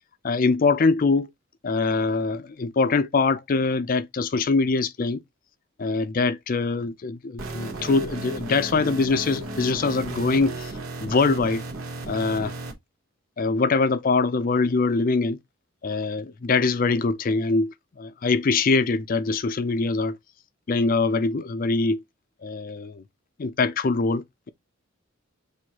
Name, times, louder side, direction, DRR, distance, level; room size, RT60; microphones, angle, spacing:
voice 1, 0.2-1.3 1.6-5.2 5.8-10.7 11.0-11.6 12.1-12.5 13.4-15.4 15.8-20.2 20.7-22.0 22.4-23.0 23.4-24.5, left 3 dB, 40° left, 0.4 m, -23 dB
sound 1, 7.4-12.7, right 2 dB, 85° right, 1.1 m, -34 dB
6.1 x 2.7 x 2.8 m
head